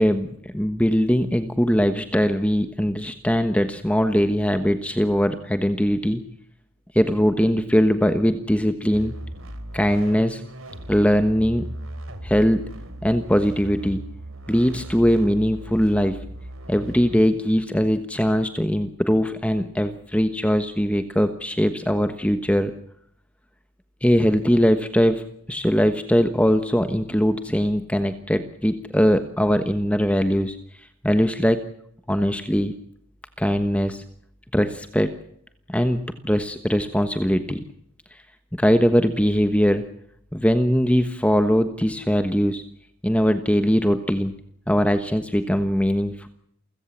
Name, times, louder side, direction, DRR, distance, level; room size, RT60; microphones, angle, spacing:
voice 1, 0.0-6.2 6.9-9.1 9.7-10.4 10.9-11.7 12.2-12.7 13.0-14.0 14.5-16.2 16.7-22.7 24.0-30.6 31.0-31.7 32.1-32.7 33.4-34.0 34.5-35.1 35.7-37.6 38.5-39.9 40.3-42.6 43.0-44.3 44.7-46.3, equal, 5° left, 8 dB, 1.2 m, -21 dB
sound 1, 8.9-17.2, right 1 dB, 85° right, 3.2 m, -37 dB
28.5 x 16.5 x 7.4 m, 0.70 s
head